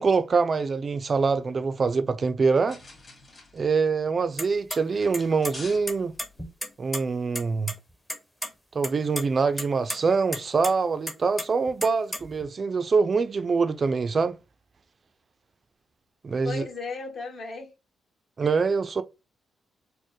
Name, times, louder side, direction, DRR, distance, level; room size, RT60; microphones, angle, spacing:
voice 1, 0.0-2.8 3.5-6.1 6.8-7.7 8.7-14.4 16.2-16.6 18.4-19.0, right 4 dB, 40° right, 0.3 m, -24 dB
sound 1, 2.7-6.5, left 2 dB, 30° left, 1.7 m, -47 dB
sound 2, 4.4-4.8 5.1-5.6 5.9-7.0 7.4-7.5 7.7-7.8 8.1-8.5 8.8-9.2 9.6-10.0 10.3-10.7 11.1-12.4, equal, 5° left, 0.7 m, -32 dB
voice 2, 16.4-17.7 18.4-18.5, left 4 dB, 45° left, 1.2 m, -35 dB
4.2 x 2.1 x 3.1 m
cardioid pair, 100°, 0 cm